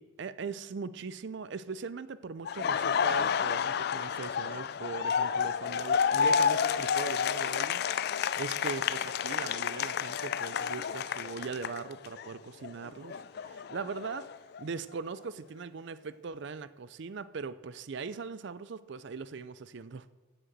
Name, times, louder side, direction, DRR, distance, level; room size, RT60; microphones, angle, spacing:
voice 1, 0.0-7.8 8.4-14.3 14.6-20.1, right 5 dB, 55° right, 15 dB, 0.4 m, -40 dB
Laughter, 2.5-12.3 12.6-14.6, left 7 dB, 50° left, 0.3 m, -30 dB
9.9 x 8.0 x 7.9 m, 1.3 s
head